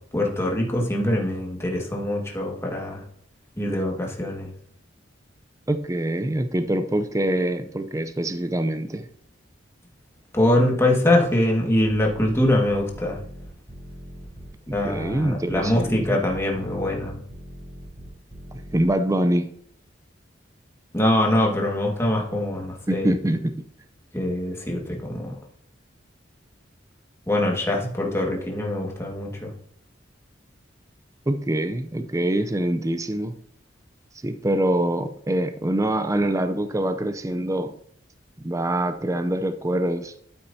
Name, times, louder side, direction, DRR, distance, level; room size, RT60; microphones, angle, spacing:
voice 1, 0.1-3.0 3.6-4.5 10.3-13.2 14.7-17.2 20.9-23.1 24.1-25.3 27.3-29.5, left 1 dB, 15° left, -1 dB, 1.8 m, -23 dB
voice 2, 5.7-9.1 14.8-16.2 18.7-19.5 22.9-23.5 31.3-33.3 34.2-37.7 38.4-40.1, right 1 dB, 15° right, 9 dB, 0.5 m, -24 dB
sound 1, 11.9-18.9, equal, 40° right, 4.6 m, -40 dB
12.0 x 8.9 x 2.7 m, 0.63 s
head